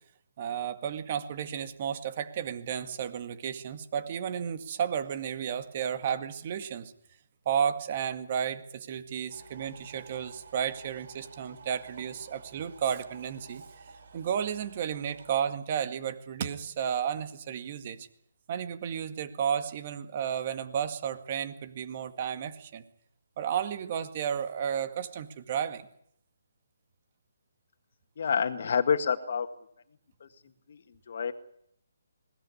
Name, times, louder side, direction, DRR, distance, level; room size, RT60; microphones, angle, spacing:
voice 1, 0.4-6.9 7.5-13.6 14.1-18.1 18.5-22.8 23.4-25.9, right 8 dB, 35° right, 10 dB, 2.0 m, -32 dB
sound 1, 9.3-15.3, right 4 dB, 60° right, 4.3 m, -51 dB
voice 2, 28.2-29.5 30.2-30.3 30.7-30.8 31.1-31.3, left 6 dB, 55° left, 7 dB, 1.9 m, -27 dB
21.0 x 17.5 x 9.9 m, 0.72 s
hypercardioid pair, 160°, 0 cm